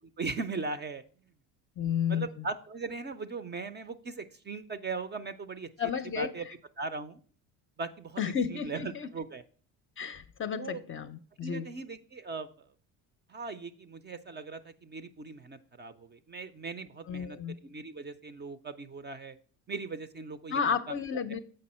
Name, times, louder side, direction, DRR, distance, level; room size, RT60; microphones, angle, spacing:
voice 1, 0.2-1.0 2.1-5.7 6.2-6.5 6.8-7.2 7.8-8.2 8.5-9.4 10.5-10.8 11.4-12.5 13.3-19.4 19.7-21.0, right 4 dB, 25° right, 0.5 m, -39 dB
voice 2, 1.8-2.5 5.8-6.3 8.2-9.1 10.0-11.7 17.1-17.5 20.5-21.4, left 7 dB, 30° left, 0.6 m, -32 dB
7.7 x 5.3 x 4.2 m
supercardioid pair, 95°, 40 cm